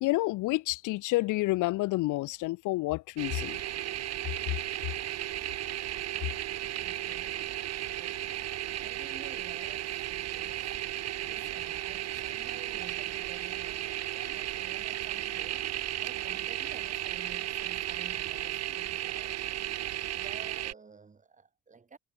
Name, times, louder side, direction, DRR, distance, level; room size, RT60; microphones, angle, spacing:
voice 1, 0.0-3.6, left 20 dB, 85° left, 0.5 m, -29 dB
sound 1, 3.2-20.7, right 12 dB, 55° right, 0.7 m, -35 dB
voice 2, 6.7-10.8 11.2-19.5 20.1-22.0, right 4 dB, 25° right, 1.8 m, -52 dB
cardioid pair, 90°, 30 cm